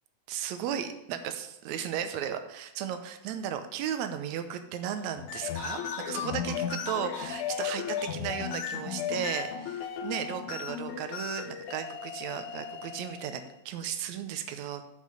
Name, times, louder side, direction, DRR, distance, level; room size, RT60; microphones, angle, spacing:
voice 1, 0.3-5.8 6.1-14.8, right 9 dB, 75° right, 9 dB, 1.9 m, -35 dB
sound 1, 5.2-13.4, left 8 dB, 80° left, 2.0 m, -35 dB
7.6 x 5.6 x 6.3 m, 0.87 s
omnidirectional pair, 3.6 m